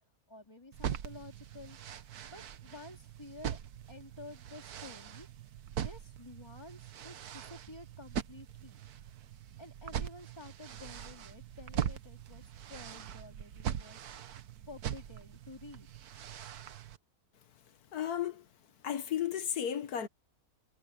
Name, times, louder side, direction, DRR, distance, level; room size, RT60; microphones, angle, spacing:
voice 1, 0.3-1.8 2.3-3.6 3.9-5.3 5.8-8.8 9.6-14.0 14.7-15.9, left 2 dB, 15° left, 3.1 m, -51 dB
sound 1, 0.7-17.0, right 9 dB, 90° right, 1.5 m, -41 dB
voice 2, 17.9-18.5 18.8-20.1, left 9 dB, 90° left, 1.7 m, -34 dB
omnidirectional pair, 1.6 m